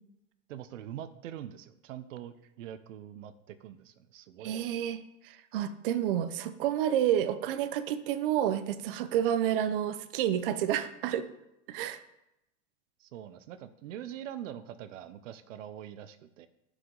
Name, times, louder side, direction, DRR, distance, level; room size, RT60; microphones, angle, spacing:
voice 1, 0.5-4.7 13.0-16.5, right 10 dB, 85° right, 12 dB, 0.7 m, -44 dB
voice 2, 4.4-11.3 11.7-12.0, right 10 dB, 45° right, 11 dB, 0.6 m, -30 dB
11.0 x 5.0 x 3.8 m, 0.86 s
supercardioid pair, 165°, 37 cm